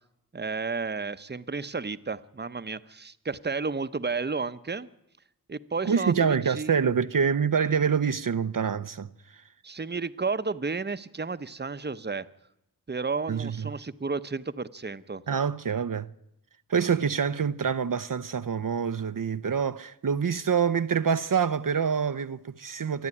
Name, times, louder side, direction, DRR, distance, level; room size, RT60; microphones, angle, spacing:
voice 1, 0.3-4.9 5.5-6.7 9.6-12.3 12.9-15.2, right 4 dB, 30° right, 0.8 m, -32 dB
voice 2, 5.8-9.5 13.3-13.7 15.3-16.1 16.7-23.1, right 6 dB, 60° right, 0.7 m, -26 dB
26.5 x 10.5 x 9.8 m
wide cardioid pair, 55°, 36 cm